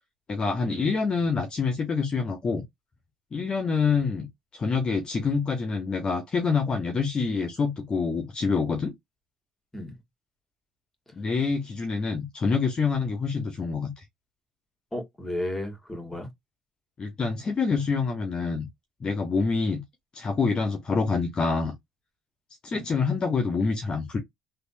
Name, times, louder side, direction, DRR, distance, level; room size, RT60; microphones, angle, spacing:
voice 1, 0.3-2.6 3.3-4.3 4.5-8.9 11.2-13.9 17.0-18.7 19.0-19.8 20.1-21.7 22.6-24.2, left 4 dB, 35° left, 0.9 m, -26 dB
voice 2, 14.9-16.3 22.7-22.8, left 1 dB, 10° left, 1.8 m, -34 dB
3.3 x 2.6 x 2.5 m
supercardioid pair, 90°, 3 cm